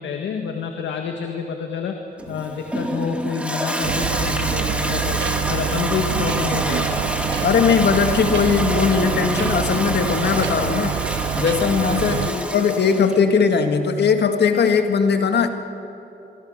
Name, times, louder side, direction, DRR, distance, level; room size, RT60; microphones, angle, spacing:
voice 1, 0.0-7.0 12.0-12.3, left 6 dB, 85° left, 4 dB, 1.7 m, -28 dB
Toilet flush, 2.2-13.2, equal, 5° right, 2.5 m, -27 dB
sound 1, 3.8-12.3, right 10 dB, 80° right, 0.7 m, -26 dB
voice 2, 7.4-10.9 11.4-15.5, left 6 dB, 65° left, 6 dB, 1.9 m, -19 dB
25.0 x 24.0 x 6.6 m, 2.9 s
cardioid pair, 75°, 18 cm